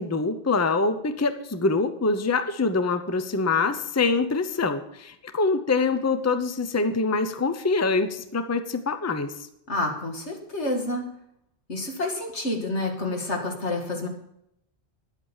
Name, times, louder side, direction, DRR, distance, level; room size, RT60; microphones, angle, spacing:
voice 1, 0.0-9.3, left 3 dB, 15° left, 9 dB, 0.7 m, -25 dB
voice 2, 9.7-11.0 11.7-14.1, left 2 dB, 85° left, 2 dB, 2.5 m, -28 dB
10.5 x 8.7 x 7.3 m, 0.77 s
omnidirectional pair, 1.1 m